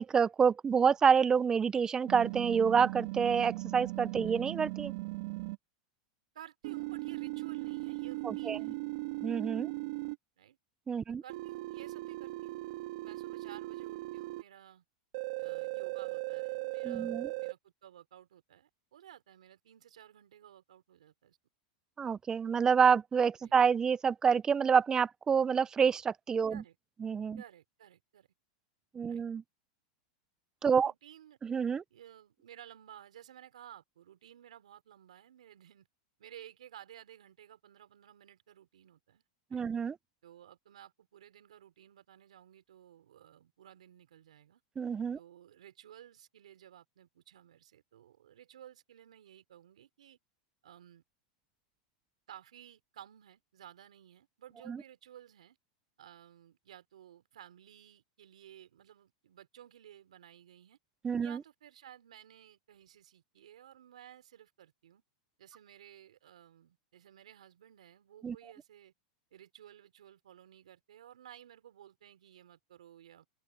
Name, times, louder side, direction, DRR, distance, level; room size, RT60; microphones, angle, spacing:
voice 1, 0.0-4.9 8.2-8.6 9.2-9.7 10.9-11.2 16.8-17.3 22.0-26.6 27.0-27.4 29.0-29.4 30.6-30.9 31.4-31.8 39.5-40.0 44.8-45.2 54.7-54.8 61.0-61.4 68.2-68.4, right 6 dB, 20° right, 0.5 m, -28 dB
sound 1, 2.1-5.6 6.6-10.2 11.3-14.4 15.1-17.5, right 22 dB, 65° right, 2.3 m, -38 dB
voice 2, 6.3-8.7 10.4-10.6 11.2-12.6 13.0-14.8 15.4-21.4 23.4-23.5 26.5-26.8 27.4-28.3 29.1-29.2 30.7-31.4 31.9-35.9 36.2-39.2 39.5-39.7 40.2-44.6 45.1-50.2 50.6-51.0 52.3-55.6 56.0-60.8 61.2-65.0 65.4-68.9 69.3-73.3, right 11 dB, 85° right, 4.1 m, -55 dB
hypercardioid pair, 120°, 4 cm